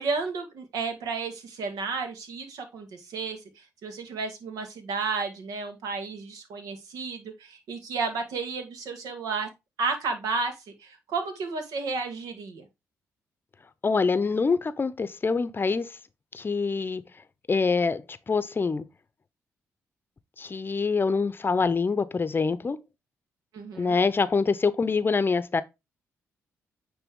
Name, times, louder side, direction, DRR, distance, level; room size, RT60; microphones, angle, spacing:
voice 1, 0.0-9.5 9.8-12.7 23.5-24.0, right 4 dB, 75° right, 1.8 m, -32 dB
voice 2, 13.8-15.9 16.3-17.0 17.5-18.8 20.4-22.8 23.8-25.6, left 4 dB, 35° left, 0.7 m, -25 dB
9.0 x 3.3 x 3.7 m
supercardioid pair, 60°, 6 cm